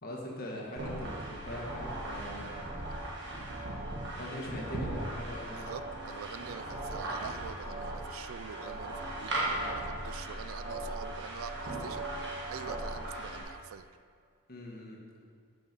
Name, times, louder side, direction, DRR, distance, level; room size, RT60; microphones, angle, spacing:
voice 1, 0.0-2.8 4.2-5.7 14.5-15.0, left 1 dB, 45° left, -2 dB, 1.6 m, -41 dB
sound 1, 0.8-13.4, right 1 dB, 55° right, 1.7 m, -38 dB
voice 2, 5.5-13.9, right 7 dB, 75° right, 13 dB, 0.4 m, -45 dB
9.0 x 6.0 x 5.5 m, 2.1 s
head